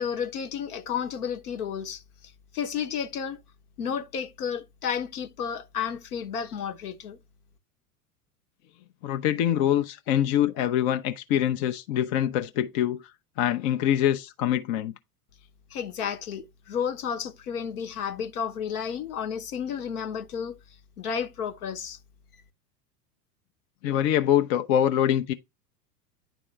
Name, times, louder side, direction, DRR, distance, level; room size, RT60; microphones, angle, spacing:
voice 1, 0.0-2.0 2.5-3.4 3.8-7.2 15.7-20.6 21.0-22.0, left 7 dB, 65° left, 1.1 m, -32 dB
voice 2, 9.0-13.0 13.4-14.9 23.8-25.3, left 11 dB, 40° left, 0.6 m, -24 dB
10.0 x 3.5 x 3.2 m
figure-of-eight pair, 90°, 49 cm